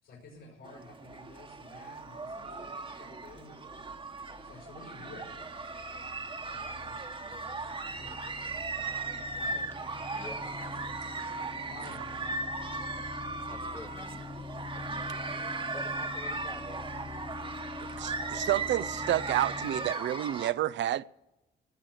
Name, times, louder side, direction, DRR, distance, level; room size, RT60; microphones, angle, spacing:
voice 1, 0.0-3.6 4.4-5.6 6.5-7.0 9.5-9.6 10.2-10.3 10.6-11.2 11.7-12.2, left 3 dB, 75° left, 5.3 m, -51 dB
sound 1, 0.6-20.5, right 3 dB, 25° right, 1.2 m, -37 dB
sound 2, 2.1-19.9, left 4 dB, 30° left, 0.7 m, -46 dB
voice 2, 13.5-14.3 15.7-16.9, left 2 dB, 10° left, 1.5 m, -47 dB
voice 3, 18.0-21.0, right 13 dB, 65° right, 0.5 m, -30 dB
18.5 x 6.3 x 7.8 m
cardioid pair, 90°, 20 cm